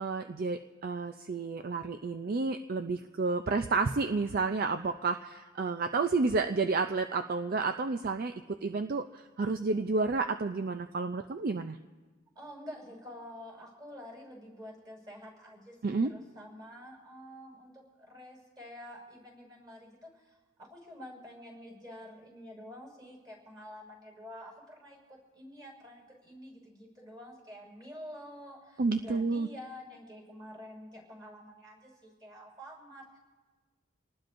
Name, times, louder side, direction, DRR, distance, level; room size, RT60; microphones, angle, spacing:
voice 1, 0.0-11.8 15.8-16.1 28.8-29.5, right 4 dB, 50° right, 8 dB, 0.5 m, -30 dB
voice 2, 12.3-33.2, left 1 dB, 20° right, -1 dB, 6.0 m, -48 dB
27.5 x 19.0 x 2.6 m, 1.3 s
head